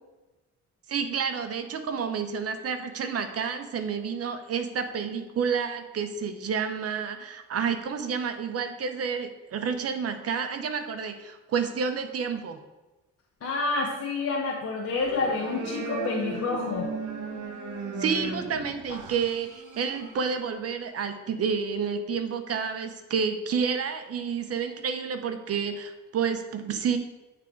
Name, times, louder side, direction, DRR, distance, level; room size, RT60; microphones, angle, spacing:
voice 1, 0.9-12.6 18.0-27.0, right 6 dB, 50° right, 8 dB, 0.8 m, -30 dB
voice 2, 13.4-16.9, left 3 dB, 50° left, -3 dB, 1.2 m, -28 dB
sound 1, 14.9-20.2, right 3 dB, 75° right, 1.2 m, -36 dB
8.5 x 3.6 x 4.6 m, 1.1 s
cardioid pair, 90°, 30 cm